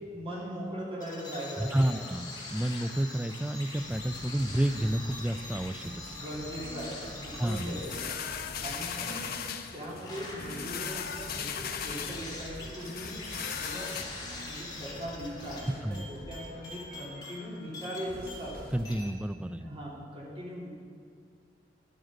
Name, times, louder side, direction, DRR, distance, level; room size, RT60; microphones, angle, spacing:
voice 1, 0.1-2.1 5.8-8.2 8.6-9.3 9.7-13.3 13.5-14.0 14.4-18.6 19.6-20.7, equal, 30° right, -6 dB, 3.4 m, -40 dB
sound 1, 1.0-18.6 18.9-19.1, left 2 dB, 25° left, 2.0 m, -44 dB
voice 2, 1.6-6.1 7.4-7.8 15.8-16.1 18.7-19.7, right 1 dB, 5° right, 11 dB, 0.3 m, -30 dB
sound 2, 3.8-18.8, equal, 50° right, 2.3 m, -48 dB
sound 3, 7.5-14.1, left 7 dB, 55° left, 0.7 m, -38 dB
11.0 x 8.9 x 6.5 m, 2.2 s
head